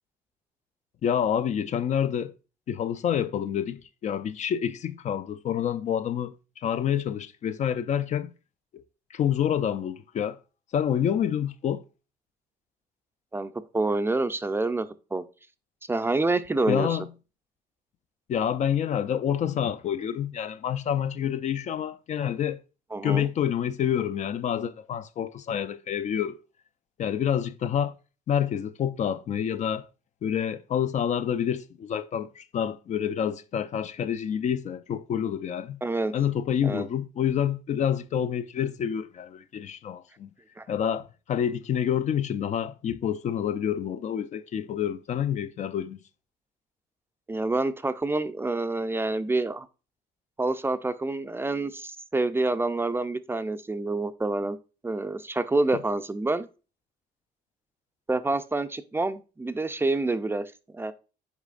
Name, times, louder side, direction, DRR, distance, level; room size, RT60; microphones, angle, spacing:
voice 1, 1.0-2.3 2.7-8.3 8.7-8.8 9.1-10.4 10.7-11.8 16.7-17.1 18.3-22.6 23.0-26.4 27.0-27.9 28.3-29.9 30.2-35.8 36.1-40.3 40.7-46.0 55.7-55.8, left 9 dB, 45° left, 0.4 m, -28 dB
voice 2, 13.3-15.2 15.9-17.0 22.9-23.3 35.8-36.1 36.6-36.9 40.6-40.7 47.3-49.7 50.4-54.6 54.8-56.5 58.1-60.9, right 2 dB, 15° right, 0.4 m, -27 dB
8.2 x 4.9 x 2.4 m
cardioid pair, 110°, 17 cm